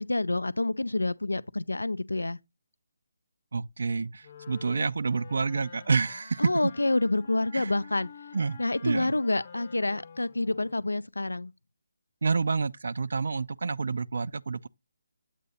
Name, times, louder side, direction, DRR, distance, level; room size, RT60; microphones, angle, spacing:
voice 1, 0.0-2.4 6.4-8.1 8.6-11.5, left 2 dB, 80° left, 0.4 m, -28 dB
voice 2, 3.5-6.7 7.5-7.7 8.3-9.1 12.2-14.7, right 4 dB, 60° right, 0.3 m, -28 dB
Wind instrument woodwind instrument, 4.2-10.9, left 6 dB, 40° left, 0.9 m, -49 dB
8.2 x 2.8 x 5.4 m
figure-of-eight pair, 150°, 0 cm